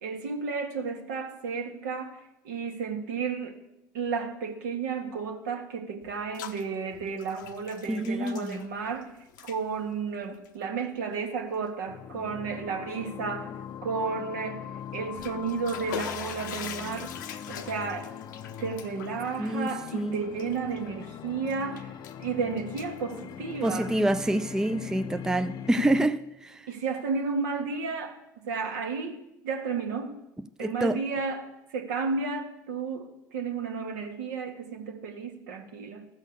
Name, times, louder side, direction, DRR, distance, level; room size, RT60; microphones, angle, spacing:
voice 1, 0.0-3.6 3.9-9.1 9.4-13.5 13.8-14.7 14.9-17.2 17.5-18.1 18.6-21.9 22.2-24.0 26.7-29.2 29.4-30.2 30.6-36.1, right 5 dB, 75° right, 1.4 m, -32 dB
Bathtub (filling or washing), 6.0-6.6 6.9-9.0 9.3-9.6 10.3-10.5 11.1-11.2 11.7-11.8 14.9-21.1 21.5-22.2 22.6-23.9, left 9 dB, 75° left, 0.7 m, -42 dB
voice 2, 7.9-8.6 19.4-20.2 23.6-26.6 30.6-31.0, right 1 dB, 5° right, 0.4 m, -27 dB
sound 1, 11.9-26.1, left 9 dB, 45° left, 0.6 m, -41 dB
14.0 x 6.5 x 6.7 m
hypercardioid pair, 70°, 10 cm